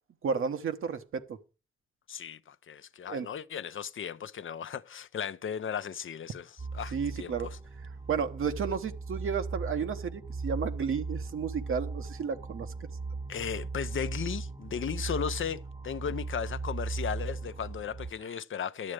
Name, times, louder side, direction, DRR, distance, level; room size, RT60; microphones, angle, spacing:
voice 1, 0.2-1.4 3.1-3.3 6.9-7.5 8.1-12.7, right 6 dB, 80° right, 0.9 m, -32 dB
voice 2, 2.1-6.5 6.7-7.6 13.3-18.9, left 8 dB, 70° left, 0.7 m, -36 dB
sound 1, 6.6-18.1, right 3 dB, 20° right, 0.8 m, -38 dB
11.0 x 7.5 x 4.8 m
cardioid pair, 45°, 21 cm